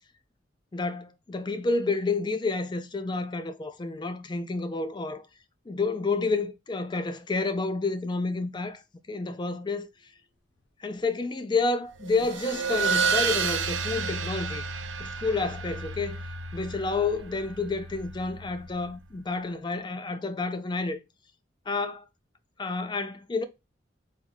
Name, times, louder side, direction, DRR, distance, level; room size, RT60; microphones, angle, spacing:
voice 1, 0.7-5.2 5.7-8.8 9.1-9.9 10.8-14.6 15.0-16.2 16.5-21.0 21.7-22.1 22.6-23.4, left 3 dB, 25° left, 0.4 m, -29 dB
sound 1, 9.7-10.6 10.9-11.9 12.1-13.7, right 4 dB, 65° left, 0.9 m, -52 dB
sound 2, 12.0-19.1, right 5 dB, 80° right, 0.5 m, -31 dB
3.6 x 2.6 x 3.1 m
head